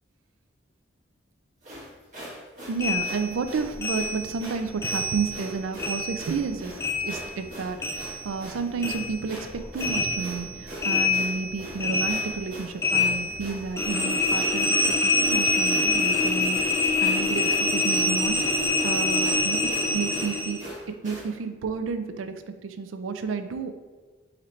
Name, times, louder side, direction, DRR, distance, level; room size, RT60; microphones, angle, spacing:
sound 1, 1.6-21.3, equal, 40° right, 1.4 m, -41 dB
voice 1, 2.7-6.7 7.0-9.5 9.7-20.6 20.9-23.7, right 5 dB, 90° right, 9 dB, 0.4 m, -31 dB
sound 2, 2.8-5.5 5.8-8.5 8.8-20.6, left 2 dB, 15° left, 0.4 m, -26 dB
3.9 x 3.1 x 4.2 m, 1.3 s
head